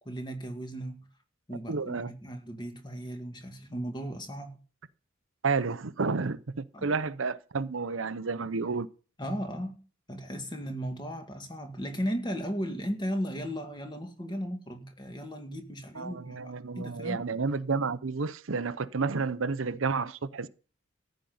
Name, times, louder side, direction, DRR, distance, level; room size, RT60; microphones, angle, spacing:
voice 1, 0.1-1.1 1.5-4.6 6.7-6.9 9.2-9.8 10.1-17.3, equal, 20° left, 1.9 m, -36 dB
voice 2, 1.7-2.1 5.4-8.9 15.9-20.5, right 4 dB, 85° right, 0.8 m, -31 dB
14.5 x 5.4 x 9.5 m
head